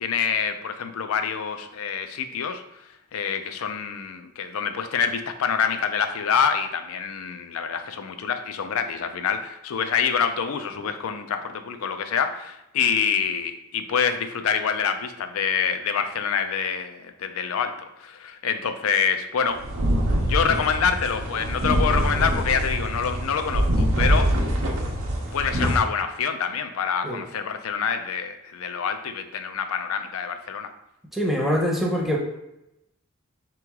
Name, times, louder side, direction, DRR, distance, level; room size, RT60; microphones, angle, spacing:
voice 1, 0.0-2.6 3.1-19.6 20.2-24.3 25.3-30.7, left 6 dB, 90° left, 8 dB, 0.4 m, -26 dB
sound 1, 19.5-25.8, equal, 85° right, 0.7 m, -24 dB
voice 2, 31.1-32.2, equal, ahead, -1 dB, 0.6 m, -24 dB
3.9 x 3.0 x 3.5 m, 0.88 s
head